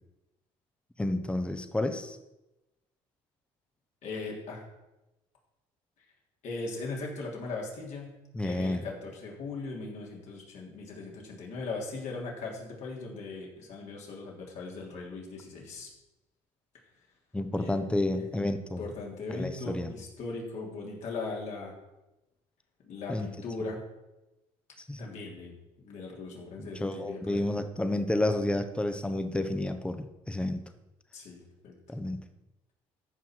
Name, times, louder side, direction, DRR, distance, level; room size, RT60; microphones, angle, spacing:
voice 1, 1.0-2.2 8.3-8.8 17.3-18.9 19.3-19.9 23.1-23.3 24.9-25.0 26.6-30.6 31.9-32.2, left 1 dB, 10° left, 8 dB, 1.0 m, -30 dB
voice 2, 4.0-4.6 6.4-8.2 8.4-15.9 17.6-17.7 18.1-18.2 18.8-21.7 22.9-23.8 25.0-25.5 25.8-27.5 31.1-31.7, left 3 dB, 60° left, -1 dB, 3.2 m, -39 dB
14.0 x 5.7 x 4.7 m, 0.97 s
cardioid pair, 100°, 13 cm